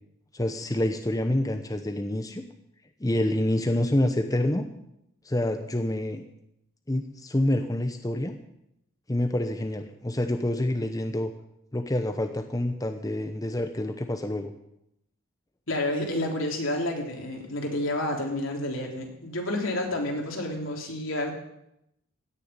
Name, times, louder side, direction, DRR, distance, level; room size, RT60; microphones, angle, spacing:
voice 1, 0.3-2.4 3.0-4.6 5.2-6.2 6.9-8.4 9.1-11.3 11.7-14.5, left 1 dB, 15° left, 6 dB, 0.8 m, -27 dB
voice 2, 15.7-21.3, left 1 dB, 75° left, 1 dB, 3.6 m, -29 dB
17.0 x 7.1 x 9.6 m, 0.81 s
head